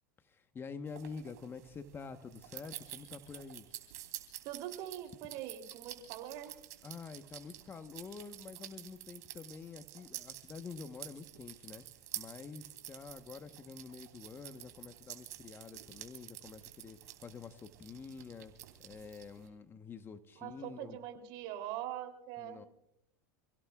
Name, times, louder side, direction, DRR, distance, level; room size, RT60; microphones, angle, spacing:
voice 1, 0.2-3.7 6.8-11.9 12.1-18.5 18.8-21.0 22.4-22.7, left 5 dB, 25° left, 9 dB, 1.1 m, -48 dB
sound 1, 0.9-19.5, right 14 dB, 75° right, 3.2 m, -50 dB
voice 2, 4.4-6.6 20.3-22.6, right 12 dB, 60° right, 7 dB, 3.2 m, -43 dB
28.5 x 17.0 x 2.4 m, 0.78 s
hypercardioid pair, 105°, 9 cm